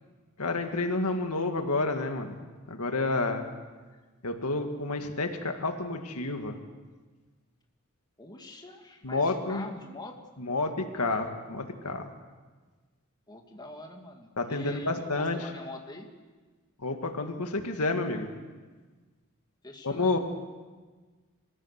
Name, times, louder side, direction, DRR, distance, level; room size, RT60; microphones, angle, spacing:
voice 1, 0.4-2.4 2.7-3.5 4.2-6.6 9.0-9.7 10.4-12.1 14.4-15.4 16.8-18.3 19.8-20.2, left 3 dB, 90° left, 5 dB, 2.0 m, -29 dB
voice 2, 8.2-10.2 13.3-16.1 19.6-20.2, left 2 dB, 20° left, 2 dB, 2.1 m, -44 dB
25.0 x 15.5 x 8.2 m, 1.3 s
head